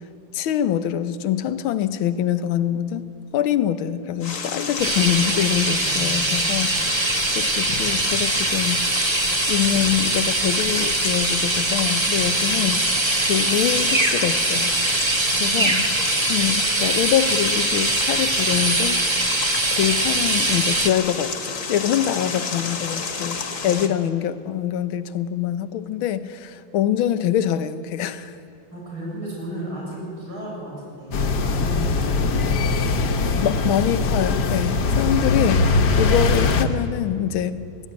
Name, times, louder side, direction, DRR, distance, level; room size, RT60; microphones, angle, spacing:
voice 1, 0.3-3.1 3.3-8.8 9.5-12.8 13.3-14.7 15.4-15.9 16.3-19.0 19.7-28.3 33.4-35.7 36.0-37.7, left 10 dB, 80° left, 12 dB, 1.6 m, -24 dB
sound 1, 4.2-23.9, left 5 dB, 45° left, 1.6 m, -30 dB
sound 2, 4.8-20.9, right 2 dB, 20° right, 0.7 m, -22 dB
voice 2, 5.6-6.8 12.4-12.6 15.3-15.9 23.6-23.9 28.7-33.8 34.7-35.7, right 1 dB, 90° right, -4 dB, 8.7 m, -36 dB
sound 3, 31.1-36.6, left 3 dB, 60° left, 1.6 m, -21 dB
20.0 x 13.5 x 9.6 m, 2.4 s
omnidirectional pair, 2.2 m